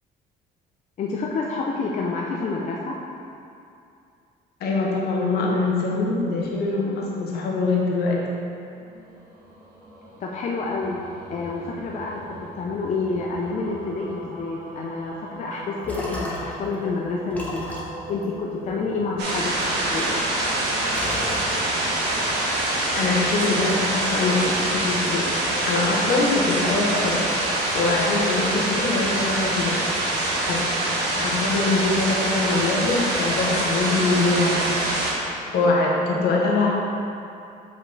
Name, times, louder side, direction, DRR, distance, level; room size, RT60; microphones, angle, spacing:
voice 1, 1.0-3.0 10.2-11.0 11.3-17.7 18.1-20.2, left 3 dB, 45° left, -2 dB, 0.6 m, -28 dB
voice 2, 4.6-8.2 22.9-25.2 25.7-27.2 27.7-29.8 30.4-30.6 31.1-34.6 35.5-36.7, left 3 dB, 70° left, -2 dB, 1.2 m, -23 dB
sound 1, 8.6-23.1, right 1 dB, 55° right, 1.2 m, -41 dB
sound 2, 15.5-16.7 17.3-19.1 19.6-20.6 20.9-22.0, left 1 dB, 10° left, 1.1 m, -35 dB
sound 3, 19.2-35.1, right 1 dB, 85° right, 1.3 m, -24 dB
5.6 x 5.1 x 4.0 m, 2.6 s
cardioid pair, 110°, 17 cm